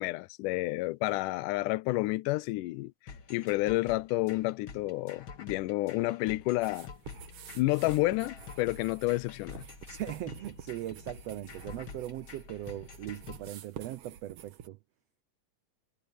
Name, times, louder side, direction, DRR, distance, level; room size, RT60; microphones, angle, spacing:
voice 1, 0.0-2.9 3.3-6.9 7.6-9.6, left 20 dB, 85° left, 2.1 m, -30 dB
sound 1, 3.1-13.5, left 5 dB, 45° left, 2.1 m, -48 dB
sound 2, 6.6-14.7, right 9 dB, 60° right, 1.8 m, -50 dB
voice 2, 9.9-14.8, right 14 dB, 80° right, 1.5 m, -39 dB
omnidirectional pair, 3.7 m